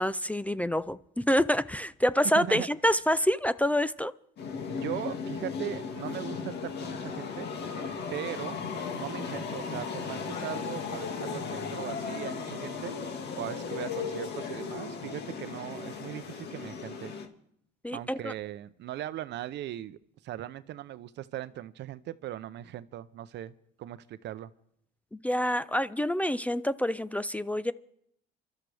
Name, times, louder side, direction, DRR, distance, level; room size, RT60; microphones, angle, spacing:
voice 1, 0.0-4.1 17.8-18.3 25.1-27.7, equal, 5° left, 0.5 m, -27 dB
voice 2, 2.3-2.7 4.7-7.5 8.1-8.6 9.0-13.0 13.4-17.1 17.9-20.0 20.2-24.5, right 13 dB, 60° right, 0.7 m, -39 dB
sound 1, 4.4-17.3, left 5 dB, 55° left, 2.0 m, -36 dB
25.5 x 12.5 x 3.4 m
supercardioid pair, 90°, 20 cm